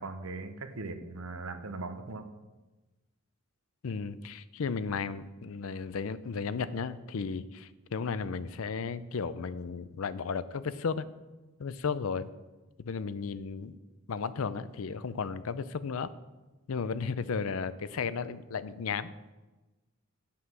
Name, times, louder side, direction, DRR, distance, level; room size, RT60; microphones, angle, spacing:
voice 1, 0.0-2.3, right 3 dB, 75° right, 8 dB, 0.9 m, -39 dB
voice 2, 3.8-11.1 11.6-12.3 12.8-13.8 14.1-16.1 16.7-19.1, left 5 dB, 75° left, 15 dB, 0.5 m, -34 dB
9.7 x 5.8 x 6.1 m, 1.1 s
head